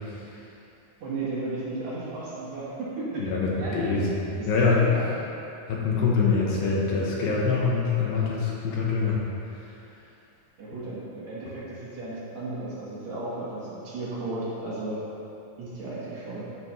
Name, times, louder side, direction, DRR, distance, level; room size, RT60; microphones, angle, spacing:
voice 1, 1.0-2.7 2.9-3.3 3.6-3.9 4.4-4.5 4.7-5.1 10.6-15.0 15.6-16.5, right 2 dB, 55° right, -9 dB, 2.3 m, -34 dB
voice 2, 3.1-4.8 5.7-9.2, left 4 dB, 75° left, -4 dB, 2.5 m, -24 dB
12.5 x 5.8 x 3.1 m, 2.8 s
omnidirectional pair, 4.4 m